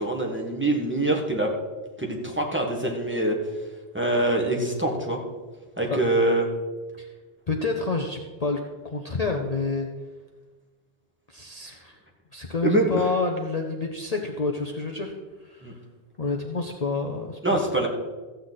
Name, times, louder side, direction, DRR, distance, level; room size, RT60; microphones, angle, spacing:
voice 1, 0.0-1.5 2.0-3.4 3.9-5.2 5.8-6.5 12.6-13.0 15.6-15.7 17.4-17.9, right 1 dB, 10° right, 0 dB, 1.5 m, -24 dB
voice 2, 7.5-9.9 11.3-11.9 12.3-15.1 15.4-15.8 16.2-17.6, left 3 dB, 40° left, 2 dB, 0.8 m, -28 dB
14.5 x 8.1 x 4.0 m, 1.3 s
omnidirectional pair, 1.1 m